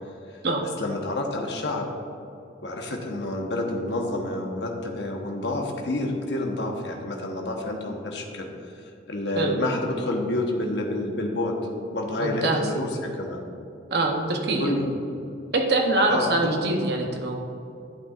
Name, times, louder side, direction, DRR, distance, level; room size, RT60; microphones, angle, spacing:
voice 1, 0.8-1.9 2.6-8.5 9.1-11.6 11.9-13.4 14.6-14.9 16.1-16.5, left 2 dB, 75° left, 1 dB, 1.1 m, -28 dB
voice 2, 12.2-12.7 13.9-14.7 15.5-17.4, right 2 dB, 65° right, 2 dB, 0.9 m, -24 dB
11.5 x 8.8 x 2.5 m, 2.6 s
head